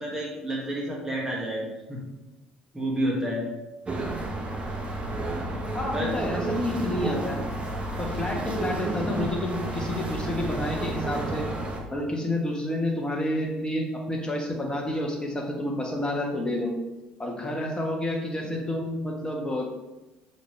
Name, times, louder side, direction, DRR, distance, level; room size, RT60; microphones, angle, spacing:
voice 1, 0.0-2.0 2.7-3.5 5.9-6.1, right 1 dB, 10° right, -4 dB, 1.8 m, -30 dB
sound 1, 3.9-11.8, right 2 dB, 30° right, 1.0 m, -31 dB
voice 2, 5.7-7.4 8.0-11.5 11.9-16.7 17.2-19.7, left 1 dB, 20° left, 0 dB, 1.4 m, -29 dB
6.8 x 4.1 x 3.3 m, 1.0 s
figure-of-eight pair, 55°, 4 cm